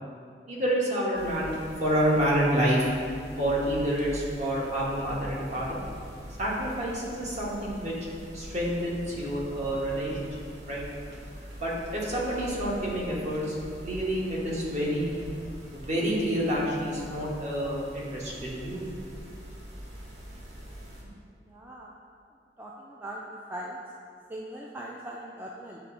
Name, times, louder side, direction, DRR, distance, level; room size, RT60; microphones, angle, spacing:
voice 1, 0.5-2.9 3.4-5.8 6.4-7.9 8.3-10.3 10.6-10.9 11.6-13.6 13.8-15.1 15.7-18.8, equal, 40° right, -5 dB, 1.2 m, -28 dB
sound 1, 1.1-21.0, equal, 85° right, 1.0 m, -44 dB
voice 2, 21.5-21.9 22.6-23.2 23.5-23.8 24.3-25.8, right 1 dB, 10° right, -2 dB, 0.3 m, -40 dB
8.2 x 3.4 x 3.7 m, 2.2 s
head